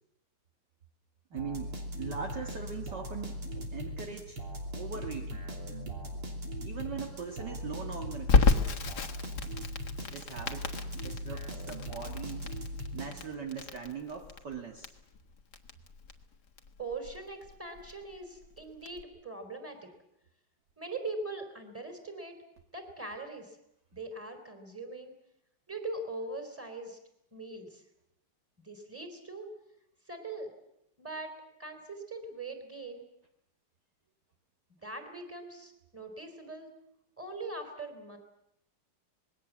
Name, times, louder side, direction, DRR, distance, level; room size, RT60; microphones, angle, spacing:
voice 1, 1.3-4.4 4.8-5.5 6.6-8.5 10.1-10.7 11.0-12.5 12.9-15.0, right 6 dB, 55° right, 2 dB, 2.2 m, -41 dB
sound 1, 1.4-13.6, equal, 75° right, 4.2 m, -39 dB
Crackle, 8.3-19.0, left 4 dB, 50° left, 1.9 m, -31 dB
voice 2, 16.8-19.9 20.8-22.4 22.7-23.6 23.9-25.1 25.7-27.0 27.3-27.8 28.6-29.5 30.1-30.5 31.0-31.3 31.6-33.0 34.8-36.7 37.2-38.2, right 2 dB, 5° right, 5 dB, 3.7 m, -41 dB
26.0 x 21.0 x 7.4 m, 0.81 s
omnidirectional pair, 2.4 m